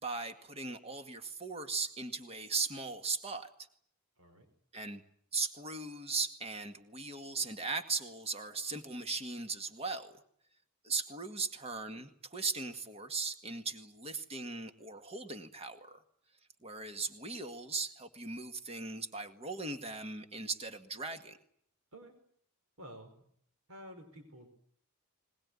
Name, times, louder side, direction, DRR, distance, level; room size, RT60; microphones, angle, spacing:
voice 1, 0.0-3.5 4.7-5.0 5.3-10.2 10.8-16.0 16.6-21.4, right 4 dB, 30° right, 7 dB, 2.0 m, -38 dB
voice 2, 22.8-23.2 23.7-24.5, equal, 70° right, 6 dB, 5.0 m, -51 dB
21.5 x 21.5 x 9.8 m, 0.64 s
head